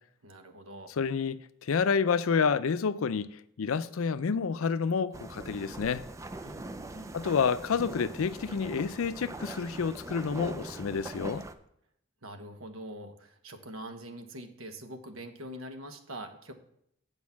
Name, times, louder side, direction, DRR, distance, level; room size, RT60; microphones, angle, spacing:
voice 1, 0.2-0.9 6.4-7.2 12.2-16.5, right 1 dB, 80° right, 1.2 m, -44 dB
voice 2, 1.0-6.0 7.1-11.5, left 5 dB, 85° left, 0.5 m, -29 dB
sound 1, 5.1-11.5, right 2 dB, 15° right, 0.4 m, -42 dB
8.3 x 5.2 x 7.1 m
head